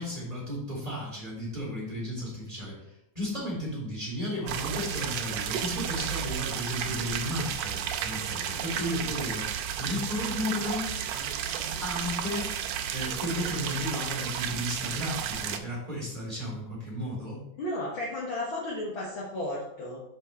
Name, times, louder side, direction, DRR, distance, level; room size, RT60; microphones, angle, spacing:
voice 1, 0.0-9.5 9.8-10.9 11.8-12.5 12.9-17.4, left 1 dB, 10° right, -6 dB, 2.7 m, -34 dB
sound 1, 4.5-15.6, right 9 dB, 85° right, 2.2 m, -32 dB
voice 2, 17.6-20.0, left 1 dB, 60° left, -4 dB, 1.4 m, -33 dB
6.2 x 5.8 x 4.4 m, 0.81 s
omnidirectional pair, 3.9 m